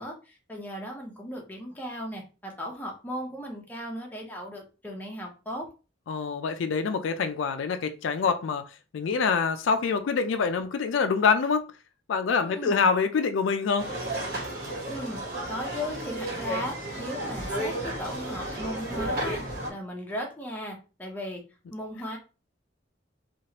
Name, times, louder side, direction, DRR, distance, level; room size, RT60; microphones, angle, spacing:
voice 1, 0.0-5.7 12.4-12.8 14.9-15.2 15.5-19.4 19.7-21.4 21.7-22.2, equal, 10° left, 0.7 m, -36 dB
voice 2, 6.1-8.6 8.9-11.7 12.1-13.9, left 5 dB, 80° left, 0.4 m, -25 dB
sound 1, 13.8-19.7, right 1 dB, 55° right, 1.2 m, -33 dB
3.0 x 2.4 x 2.9 m
head